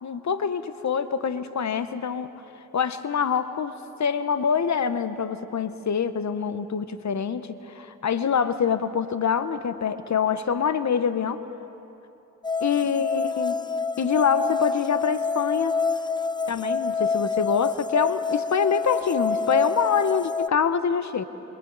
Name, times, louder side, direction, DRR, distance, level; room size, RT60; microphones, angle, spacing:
voice 1, 0.0-2.3 2.7-3.7 4.0-11.4 12.6-13.6 14.0-15.7 16.5-21.2, left 6 dB, 60° left, 12 dB, 1.0 m, -25 dB
sound 1, 12.4-20.5, left 4 dB, 15° left, 0.5 m, -27 dB
27.0 x 27.0 x 4.0 m, 3.0 s
supercardioid pair, 45°, 33 cm